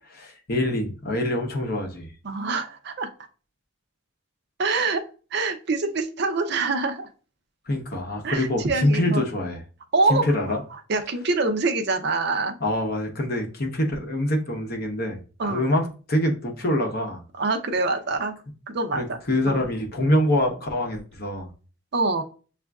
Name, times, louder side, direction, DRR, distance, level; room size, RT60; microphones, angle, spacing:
voice 1, 0.3-2.1 7.7-9.6 10.1-10.6 12.6-17.2 18.9-21.5, left 1 dB, 50° left, 2 dB, 0.9 m, -25 dB
voice 2, 2.2-3.1 4.6-5.0 5.3-7.1 8.2-9.2 9.9-10.2 10.9-12.6 15.4-15.7 17.4-18.4 18.7-19.2 19.5-19.6 21.9-22.2, right 3 dB, 50° right, 6 dB, 0.5 m, -25 dB
7.0 x 2.5 x 2.3 m, 0.37 s
head